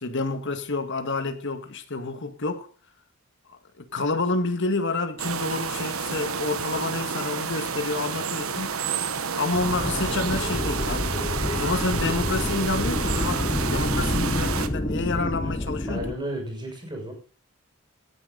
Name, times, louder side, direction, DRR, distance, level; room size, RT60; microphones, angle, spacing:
voice 1, 0.0-2.7 3.5-8.7 9.4-11.1 11.5-16.0, left 3 dB, 55° left, 1.9 m, -29 dB
sound 1, 5.2-14.7, right 6 dB, 70° right, 1.2 m, -30 dB
sound 2, 9.6-16.1, left 1 dB, 20° left, 0.7 m, -28 dB
voice 2, 15.4-17.1, right 1 dB, 20° right, 6.7 m, -34 dB
17.5 x 10.0 x 4.1 m
head